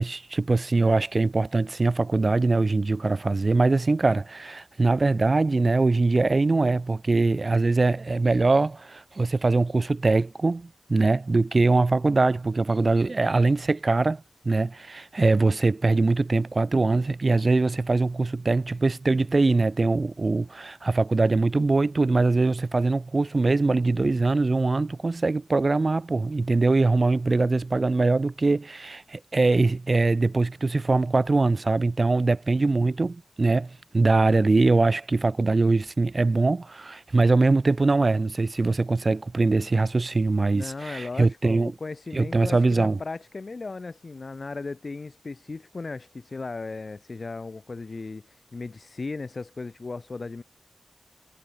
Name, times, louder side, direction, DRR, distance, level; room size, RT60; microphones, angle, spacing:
voice 1, 0.0-41.7 42.1-43.0, right 3 dB, 40° right, 0.5 m, -22 dB
voice 2, 40.5-50.4, left 3 dB, 50° left, 3.3 m, -36 dB
wide cardioid pair, 100°, 0 cm